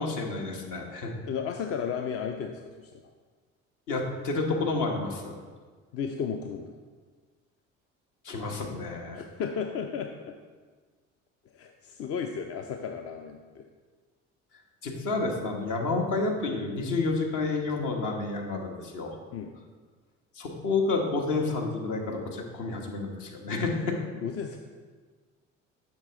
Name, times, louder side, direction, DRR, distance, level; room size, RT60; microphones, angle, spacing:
voice 1, 0.0-1.1 3.9-5.3 8.2-9.2 14.8-19.1 20.3-24.0, left 3 dB, 55° left, 1 dB, 1.4 m, -30 dB
voice 2, 1.3-2.9 5.9-6.7 9.1-10.3 11.5-13.6 19.3-19.5 24.2-24.6, left 7 dB, 40° left, 4 dB, 0.6 m, -34 dB
7.2 x 5.8 x 3.8 m, 1.5 s
figure-of-eight pair, 60°, 38 cm